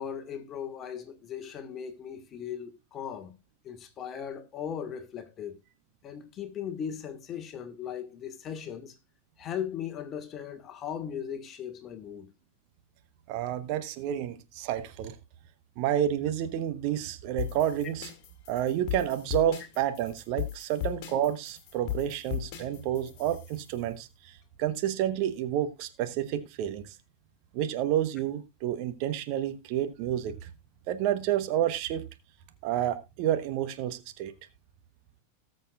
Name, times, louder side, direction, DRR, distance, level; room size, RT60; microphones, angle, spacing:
voice 1, 0.0-3.4 3.6-5.6 6.0-9.0 9.4-12.3, left 8 dB, 30° left, 1.6 m, -38 dB
voice 2, 13.3-15.2 15.8-18.1 18.5-26.9 27.5-30.5 30.9-32.1 32.6-34.3, right 11 dB, 45° right, 1.1 m, -30 dB
sound 1, 17.4-23.7, left 12 dB, 45° left, 2.3 m, -37 dB
19.0 x 6.6 x 2.4 m
figure-of-eight pair, 90°, 0 cm